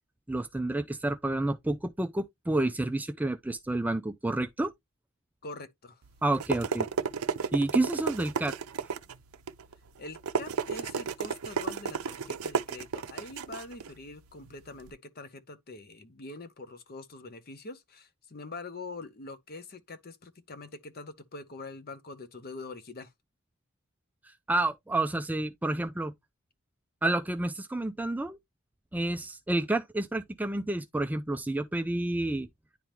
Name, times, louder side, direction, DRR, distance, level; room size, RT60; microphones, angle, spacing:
voice 1, 0.3-4.7 6.2-6.9 7.5-8.5 8.8-8.9 24.2-26.1 27.0-28.4 28.9-32.5, right 2 dB, 5° right, 0.3 m, -29 dB
voice 2, 5.4-6.0 10.0-23.1, left 3 dB, 45° left, 0.8 m, -44 dB
sound 1, 6.0-14.9, right 6 dB, 80° right, 0.6 m, -34 dB
10.0 x 3.5 x 3.0 m
head